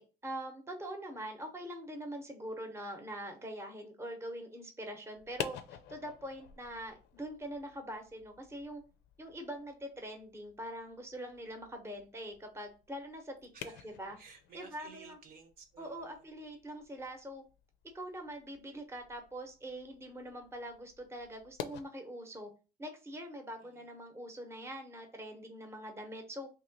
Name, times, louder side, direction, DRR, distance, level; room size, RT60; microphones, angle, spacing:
voice 1, 0.0-8.8 9.2-13.4 13.8-14.2 14.5-15.2 15.8-17.4 17.9-22.5 22.8-26.5, right 1 dB, 15° right, 4 dB, 0.8 m, -43 dB
sound 1, 5.1-21.8, left 10 dB, 85° left, 0.5 m, -50 dB
voice 2, 13.5-16.3 23.6-24.0, right 5 dB, 60° right, 5 dB, 0.9 m, -56 dB
3.0 x 2.8 x 4.0 m, 0.34 s
cardioid pair, 110°, 17 cm